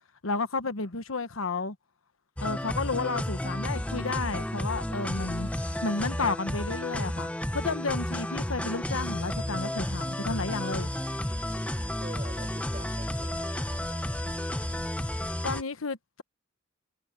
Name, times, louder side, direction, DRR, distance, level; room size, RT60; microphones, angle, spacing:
voice 1, 0.2-1.8 2.4-5.5 5.8-10.9 15.4-16.2, left 3 dB, 90° left, 1.2 m, -32 dB
sound 1, 2.4-15.6, left 1 dB, 5° left, 0.8 m, -32 dB
voice 2, 12.0-14.3, right 2 dB, 35° right, 3.7 m, -46 dB
head